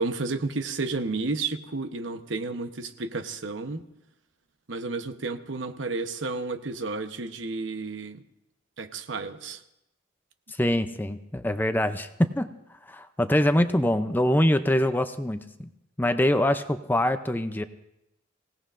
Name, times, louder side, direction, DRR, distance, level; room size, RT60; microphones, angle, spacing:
voice 1, 0.0-3.8 4.7-8.2 8.8-9.6, right 3 dB, 70° right, 9 dB, 0.9 m, -31 dB
voice 2, 10.5-12.5 12.9-15.7 16.0-17.6, left 1 dB, 10° left, 9 dB, 0.5 m, -24 dB
25.5 x 17.5 x 2.6 m, 0.87 s
head